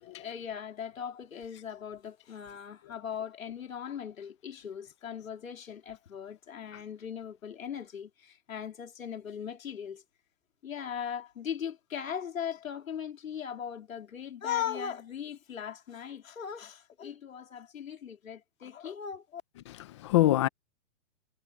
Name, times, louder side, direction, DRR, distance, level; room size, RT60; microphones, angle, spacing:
voice 1, 0.0-10.0 10.6-19.4, left 8 dB, 75° left, 3.7 m, -39 dB
voice 2, 19.7-20.5, left 15 dB, 20° left, 0.9 m, -25 dB
hypercardioid pair, 165°, 41 cm